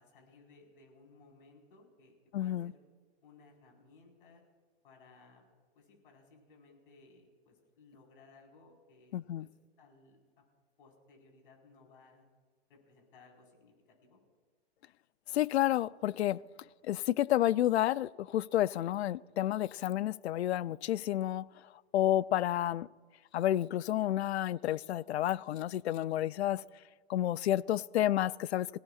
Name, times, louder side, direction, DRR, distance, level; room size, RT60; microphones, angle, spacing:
voice 1, 0.0-2.8 3.2-4.4 4.8-5.4 5.7-9.5 9.8-10.4 10.8-12.2 12.7-14.2, left 3 dB, 55° left, 4.6 m, -61 dB
voice 2, 2.3-2.7 9.1-9.5 15.3-16.4 16.8-21.5 21.9-22.9 23.3-26.6 27.1-28.7, left 13 dB, 80° left, 0.5 m, -30 dB
25.5 x 16.5 x 2.4 m
hypercardioid pair, 175°, 32 cm